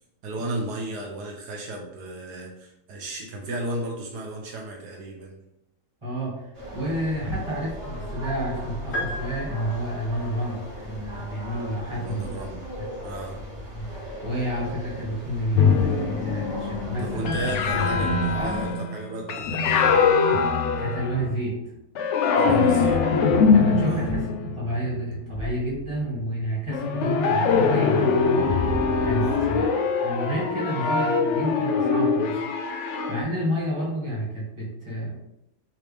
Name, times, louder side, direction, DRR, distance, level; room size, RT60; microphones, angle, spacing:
voice 1, 0.2-5.4 11.9-12.6 13.0-13.3 17.0-20.0 22.4-23.0 23.8-24.0 29.2-29.5, right 2 dB, 75° right, 0 dB, 1.3 m, -34 dB
voice 2, 6.0-12.4 13.7-13.9 14.2-17.5 18.4-18.6 20.8-21.6 22.4-28.2 29.0-29.7 30.0-32.4 33.1-35.2, right 1 dB, 20° right, -6 dB, 1.6 m, -30 dB
sound 1, 6.5-18.7, equal, 45° right, 2.0 m, -37 dB
sound 2, 8.9-10.2, equal, 50° left, 1.0 m, -33 dB
sound 3, 15.5-21.5 22.0-25.9 26.7-33.2, left 5 dB, 75° left, 0.6 m, -23 dB
5.0 x 3.0 x 3.4 m, 0.82 s
omnidirectional pair, 1.7 m